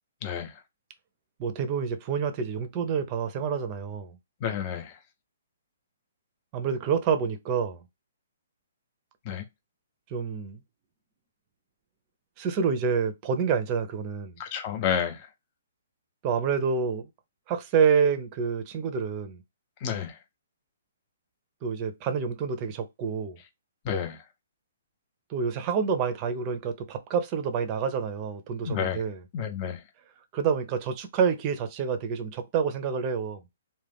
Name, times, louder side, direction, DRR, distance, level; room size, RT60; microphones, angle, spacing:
voice 1, 0.2-0.5 4.4-5.0 9.3-9.4 14.4-15.3 19.8-20.2 23.8-24.2 28.6-29.0 29.3-29.8, left 8 dB, 30° left, 0.6 m, -30 dB
voice 2, 1.4-4.2 6.5-7.8 10.1-10.6 12.4-14.3 16.2-17.1 17.5-19.4 21.6-23.4 25.3-29.2 30.3-33.4, right 6 dB, 30° right, 0.5 m, -28 dB
2.4 x 2.2 x 3.4 m
hypercardioid pair, 155°, 0 cm